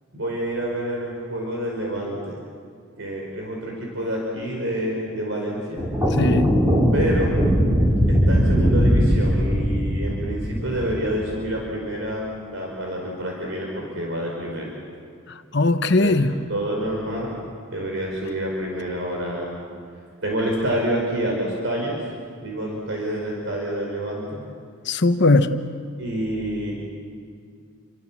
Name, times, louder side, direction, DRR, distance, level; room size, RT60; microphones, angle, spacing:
voice 1, 0.1-2.4 3.0-5.8 6.9-7.4 8.1-14.7 16.0-16.1 16.5-17.3 17.7-19.6 20.2-22.0 22.4-24.4 26.0-26.7, right 1 dB, 70° right, -1 dB, 5.1 m, -28 dB
sound 1, 5.8-11.4, equal, 15° right, 4.0 m, -20 dB
voice 2, 6.1-6.6 15.3-16.4 24.8-25.5, left 2 dB, 55° left, 9 dB, 1.1 m, -19 dB
29.0 x 25.5 x 7.5 m, 2.2 s
head